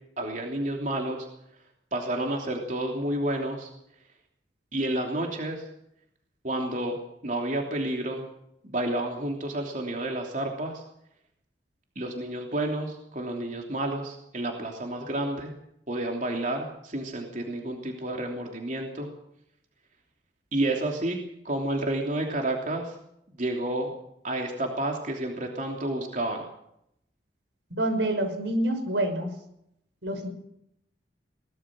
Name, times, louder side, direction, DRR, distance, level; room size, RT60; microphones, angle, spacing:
voice 1, 0.2-1.3 1.9-3.7 4.7-5.6 6.4-8.2 8.6-10.8 11.9-15.5 15.9-19.1 20.5-21.2 21.4-22.9 23.4-23.9 24.2-26.4, right 1 dB, 45° right, 1 dB, 3.1 m, -30 dB
voice 2, 27.7-29.3 30.0-30.3, right 1 dB, 85° right, 6 dB, 5.9 m, -27 dB
22.5 x 19.0 x 6.3 m, 0.76 s
head